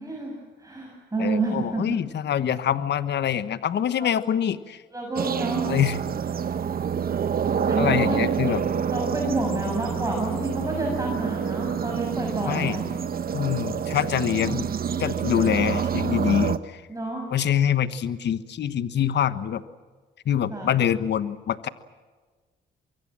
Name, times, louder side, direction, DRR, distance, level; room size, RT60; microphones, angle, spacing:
voice 1, 0.0-2.0 4.0-4.1 4.9-5.7 7.7-8.5 8.9-12.8 16.9-17.2 20.5-20.7, right 2 dB, 15° right, -1 dB, 7.2 m, -29 dB
voice 2, 1.2-4.8 5.7-6.0 7.8-8.6 12.4-12.8 13.3-14.7 15.0-16.8 17.3-19.6 20.2-21.7, left 9 dB, 60° left, 13 dB, 1.2 m, -25 dB
sound 1, 5.2-16.6, right 7 dB, 50° right, 1.2 m, -27 dB
24.5 x 23.5 x 7.6 m, 1.4 s
cardioid pair, 90°, 20 cm